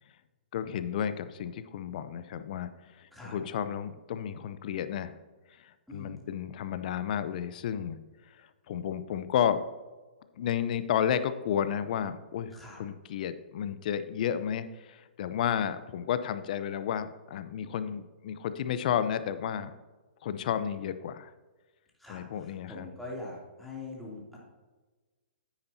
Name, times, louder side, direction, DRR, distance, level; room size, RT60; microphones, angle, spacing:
voice 1, 0.5-5.1 5.6-8.0 8.3-9.6 10.4-19.8 20.2-21.3 22.1-22.9, left 9 dB, 50° left, 12 dB, 0.6 m, -32 dB
voice 2, 5.9-6.2 12.5-12.8 22.0-24.4, left 2 dB, ahead, -6 dB, 2.9 m, -43 dB
9.9 x 8.9 x 2.8 m, 1.2 s
figure-of-eight pair, 125°, 6 cm